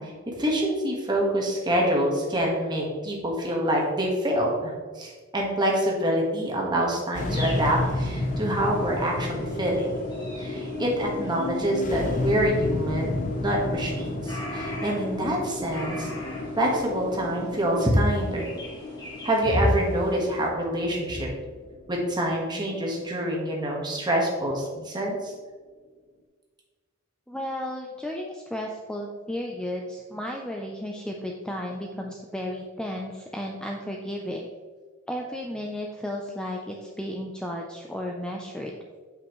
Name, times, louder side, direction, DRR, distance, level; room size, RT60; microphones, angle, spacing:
voice 1, 0.0-9.9 10.4-16.1 16.6-18.4 19.2-21.3 21.9-25.3, equal, 20° right, -2 dB, 1.4 m, -26 dB
sound 1, 7.1-23.5, left 2 dB, 40° left, 0.7 m, -32 dB
sound 2, 7.2-20.5, left 1 dB, 20° left, 1.8 m, -44 dB
voice 2, 27.3-34.5 35.1-38.7, left 1 dB, 5° left, 0 dB, 0.5 m, -33 dB
7.8 x 5.6 x 3.1 m, 1.5 s
head